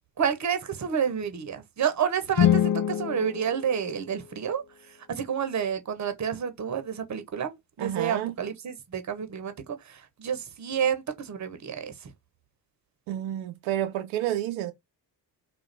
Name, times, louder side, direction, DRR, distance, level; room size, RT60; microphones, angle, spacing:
voice 1, 0.2-4.6 5.1-12.1, right 8 dB, 35° right, 0.9 m, -29 dB
sound 1, 2.3-4.5, left 11 dB, 45° left, 0.6 m, -26 dB
voice 2, 7.8-8.3 13.1-14.7, right 12 dB, 80° right, 0.6 m, -30 dB
2.4 x 2.4 x 3.3 m
supercardioid pair, 55°, 48 cm